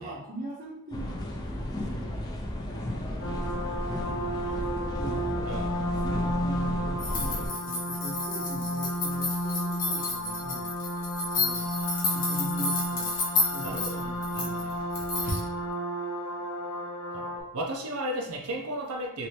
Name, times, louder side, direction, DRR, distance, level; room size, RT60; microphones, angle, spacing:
voice 1, 0.0-5.6 6.0-10.7 11.3-11.7 12.1-13.1 13.5-14.7, equal, 40° right, -7 dB, 0.6 m, -42 dB
sound 1, 0.9-7.5, left 1 dB, 20° left, 0.4 m, -33 dB
sound 2, 3.2-17.4, equal, 70° left, 0.6 m, -32 dB
voice 2, 5.5-5.9 13.6-14.0 14.3-14.7 17.1-19.3, right 1 dB, 85° right, 2 dB, 0.5 m, -35 dB
sound 3, 7.0-15.5, left 3 dB, 40° left, 0.7 m, -31 dB
2.9 x 2.6 x 3.1 m, 0.82 s
head